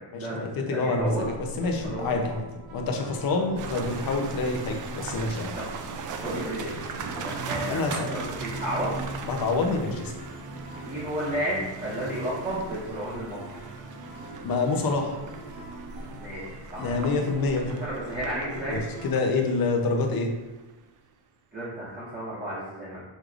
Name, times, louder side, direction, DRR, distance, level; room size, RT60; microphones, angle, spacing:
voice 1, 0.0-1.3 1.9-2.1 5.5-5.7 6.2-9.0 10.8-13.6 16.2-17.0 17.6-18.8 21.5-23.0, equal, 20° right, -10 dB, 1.3 m, -33 dB
voice 2, 0.6-2.4 2.7-5.6 7.7-8.1 9.2-10.1 14.4-15.2 16.8-17.7 18.7-20.3, left 3 dB, 50° left, 2 dB, 0.8 m, -27 dB
sound 1, 1.0-19.1, right 1 dB, 80° right, 1.4 m, -42 dB
sound 2, 3.6-20.7, right 5 dB, 45° right, 0.5 m, -39 dB
6.5 x 3.2 x 2.5 m, 1.1 s
cardioid pair, 135°, 46 cm